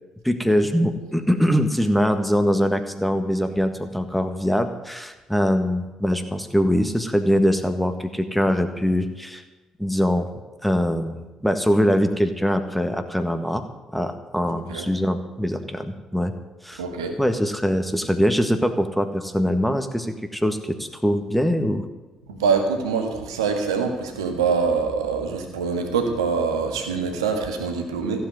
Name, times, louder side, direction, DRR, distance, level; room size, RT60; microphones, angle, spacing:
voice 1, 0.2-9.4 9.8-10.3 10.6-13.6 13.9-16.3 16.6-16.8 17.2-21.8, equal, 5° left, 8 dB, 1.6 m, -22 dB
voice 2, 16.8-17.2 22.3-28.3, right 5 dB, 75° right, 4 dB, 1.7 m, -24 dB
15.5 x 7.8 x 9.4 m, 1.2 s
figure-of-eight pair, 40°, 3 cm